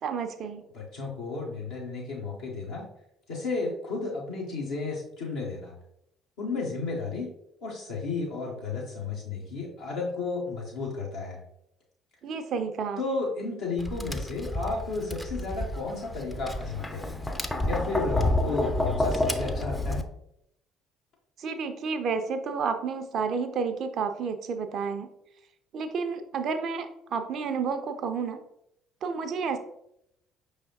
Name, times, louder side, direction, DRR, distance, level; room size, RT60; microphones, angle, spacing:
voice 1, 0.0-0.6 12.2-13.0 21.4-25.1 25.7-28.4 29.0-29.6, right 5 dB, 50° right, 7 dB, 0.4 m, -30 dB
voice 2, 0.7-2.9 3.3-5.7 6.4-7.3 7.6-11.4 13.0-17.1 17.7-20.0, left 3 dB, 70° left, -5 dB, 0.9 m, -33 dB
Tap, 13.8-20.0, left 1 dB, 10° left, 0.5 m, -29 dB
5.5 x 3.2 x 2.8 m, 0.77 s
figure-of-eight pair, 50°, 0 cm